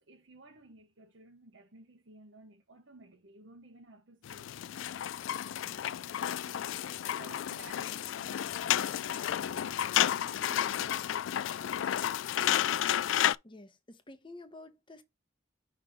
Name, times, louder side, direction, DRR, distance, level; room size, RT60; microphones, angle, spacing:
voice 1, 0.0-5.2 5.5-11.8, right 2 dB, 65° right, 1.1 m, -56 dB
sound 1, 4.2-13.4, left 11 dB, 70° left, 0.3 m, -31 dB
voice 2, 13.4-15.0, left 2 dB, 25° left, 1.0 m, -51 dB
5.7 x 3.6 x 5.0 m
head